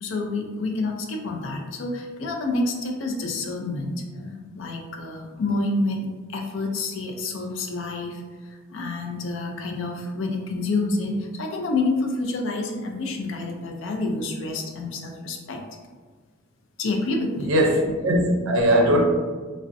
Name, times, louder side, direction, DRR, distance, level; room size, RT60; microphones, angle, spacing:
voice 1, 0.0-15.6 16.8-17.5, left 2 dB, 65° left, 2 dB, 0.4 m, -28 dB
voice 2, 17.4-19.0, equal, 85° right, 1 dB, 0.5 m, -20 dB
2.4 x 2.1 x 2.5 m, 1.4 s
head